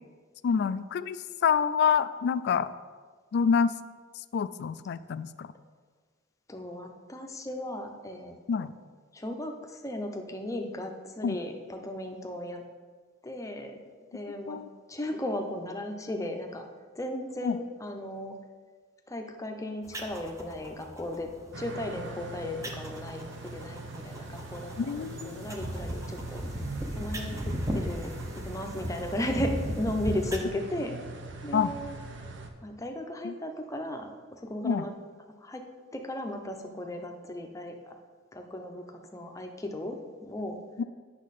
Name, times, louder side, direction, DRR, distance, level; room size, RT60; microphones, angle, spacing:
voice 1, 0.4-1.2 1.4-2.7 3.3-3.7 4.3-5.5 8.5-8.7 11.2-11.4 14.5-14.7 17.4-17.6 24.8-25.5 31.5-31.7 33.2-33.3 34.6-34.9 40.8-40.9, left 6 dB, 60° left, 15 dB, 0.3 m, -27 dB
voice 2, 6.5-8.7 9.1-12.6 13.2-13.8 14.1-14.6 14.9-16.6 17.0-18.4 19.1-21.3 21.6-26.4 27.0-28.1 28.4-29.5 29.8-31.0 31.4-31.9 32.6-34.9 35.4-35.6 35.9-37.7 38.3-40.6, left 1 dB, 15° left, 3 dB, 0.7 m, -36 dB
sound 1, 19.8-30.4, equal, 15° right, 0.7 m, -37 dB
sound 2, 21.5-32.5, right 3 dB, 65° right, 0.7 m, -42 dB
8.5 x 6.0 x 4.1 m, 1.5 s
head